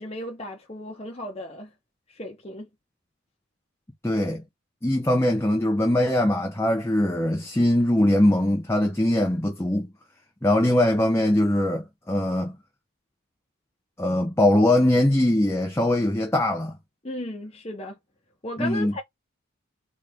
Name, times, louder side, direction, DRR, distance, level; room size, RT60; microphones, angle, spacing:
voice 1, 0.0-1.7 2.1-2.7 17.0-18.0 18.4-19.0, left 1 dB, 30° left, 1.0 m, -35 dB
voice 2, 4.0-4.4 4.8-9.9 10.4-12.6 14.0-16.8 18.6-19.0, left 1 dB, 10° left, 0.7 m, -21 dB
4.1 x 3.6 x 3.5 m
head